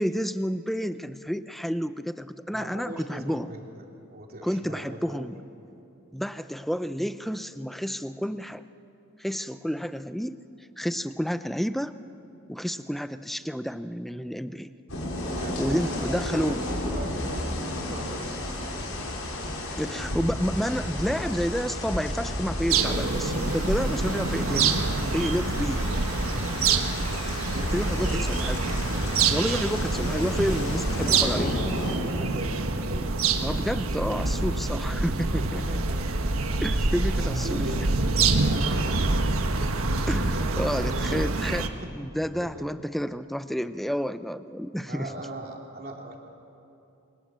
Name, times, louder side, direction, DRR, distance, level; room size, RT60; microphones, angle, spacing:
voice 1, 0.0-3.5 4.4-5.4 6.1-8.6 9.2-10.4 10.8-11.9 12.5-14.7 15.6-16.6 19.8-24.8 25.1-25.8 27.7-28.6 29.3-31.6 33.4-35.6 36.6-37.6 40.1-45.1, equal, ahead, 11 dB, 0.6 m, -30 dB
voice 2, 2.5-3.8 4.1-5.3 15.2-19.6 27.2-28.3 31.9-33.1 35.4-36.1 36.5-36.6 37.1-37.8 38.3-39.2 40.2-41.2 41.8-41.9 42.4-42.7 44.9-46.2, right 1 dB, 45° right, 1 dB, 2.9 m, -40 dB
sound 1, 14.9-32.0, left 1 dB, 80° left, 5.3 m, -33 dB
sound 2, 22.7-41.7, right 3 dB, 85° right, 1.4 m, -26 dB
28.0 x 24.0 x 7.6 m, 2.8 s
head